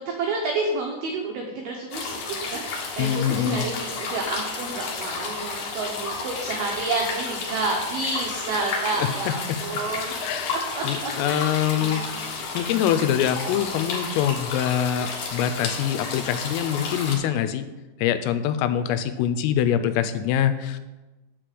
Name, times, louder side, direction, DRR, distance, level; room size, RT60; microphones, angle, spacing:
voice 1, 0.0-10.3 10.8-12.2, right 3 dB, 90° right, 1 dB, 2.1 m, -30 dB
sound 1, 1.9-17.2, left 4 dB, 65° left, 2.3 m, -32 dB
voice 2, 3.0-3.7 9.0-9.1 10.2-12.0 12.5-17.6 18.0-20.8, left 10 dB, 90° left, 10 dB, 3.3 m, -24 dB
8.5 x 5.0 x 7.6 m, 1.1 s
omnidirectional pair, 5.8 m